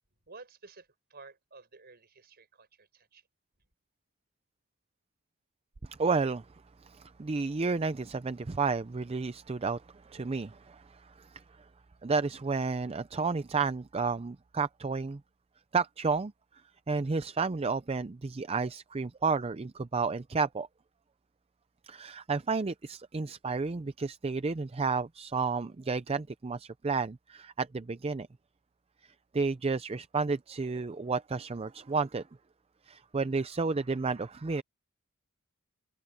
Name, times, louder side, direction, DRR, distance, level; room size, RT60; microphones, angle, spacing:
voice 1, 0.3-3.2, right 3 dB, 45° right, 5.4 m, -53 dB
voice 2, 5.8-6.5 6.8-11.4 12.0-15.2 15.7-16.3 16.9-20.7 21.8-28.3 29.0-32.3 32.9-34.6, right 4 dB, 25° right, 0.5 m, -31 dB
head